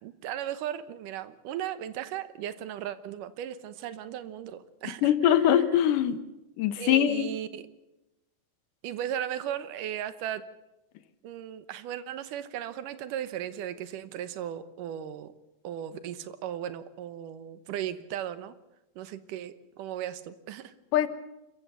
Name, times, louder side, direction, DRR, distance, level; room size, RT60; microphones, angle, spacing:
voice 1, 0.0-5.3 6.8-7.6 8.8-10.4 11.2-15.3 15.6-18.5 19.0-20.7, right 10 dB, 85° right, 14 dB, 2.6 m, -36 dB
voice 2, 5.0-6.2 6.6-7.4 20.9-21.1, left 10 dB, 85° left, 12 dB, 2.8 m, -22 dB
26.5 x 15.0 x 6.9 m, 0.96 s
omnidirectional pair, 3.6 m